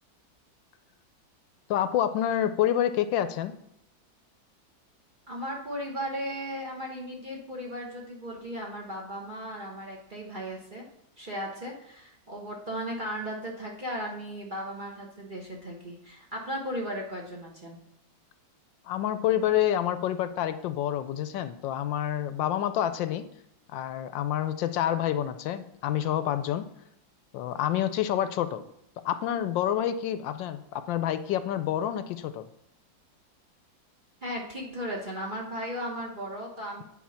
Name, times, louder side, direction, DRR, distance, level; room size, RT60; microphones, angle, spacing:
voice 1, 1.7-3.5 18.9-23.2 23.7-26.7 27.3-28.7 29.0-32.5, left 11 dB, 80° left, 11 dB, 1.2 m, -28 dB
voice 2, 5.3-10.8 11.2-17.8 34.2-36.8, equal, 30° right, -2 dB, 1.1 m, -36 dB
9.4 x 4.6 x 5.7 m, 0.78 s
omnidirectional pair, 2.1 m